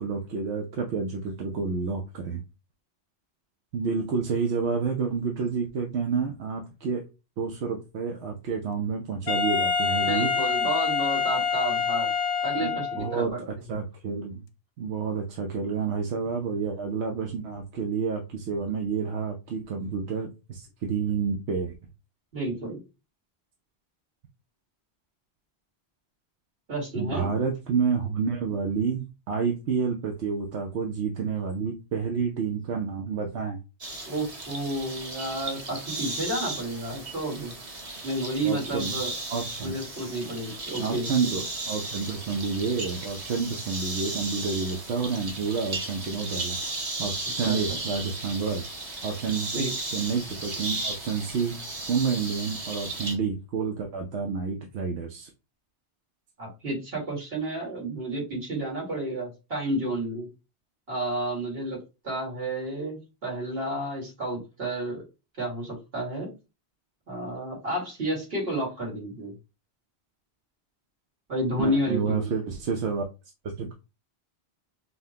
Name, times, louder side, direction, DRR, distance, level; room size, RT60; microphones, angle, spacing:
voice 1, 0.0-2.4 3.7-7.0 7.4-10.3 12.6-14.4 14.8-21.7 26.9-33.6 38.4-39.0 39.3-39.7 40.8-46.7 47.0-48.6 49.0-51.6 51.9-55.3 71.6-73.1 73.4-73.7, right 5 dB, 85° right, 1.0 m, -29 dB
Wind instrument woodwind instrument, 9.3-13.2, left 6 dB, 80° left, 0.9 m, -26 dB
voice 2, 10.0-12.1 12.4-13.4 22.3-22.8 26.7-27.3 34.1-37.5 38.0-39.1 39.6-41.1 47.4-47.6 49.5-49.7 56.4-60.3 60.9-61.8 62.0-65.0 65.4-66.3 67.1-69.3 71.3-72.3, right 1 dB, 65° right, 2.2 m, -31 dB
sound 1, 33.8-53.1, right 2 dB, 35° right, 1.0 m, -35 dB
5.6 x 2.1 x 2.8 m
omnidirectional pair, 1.1 m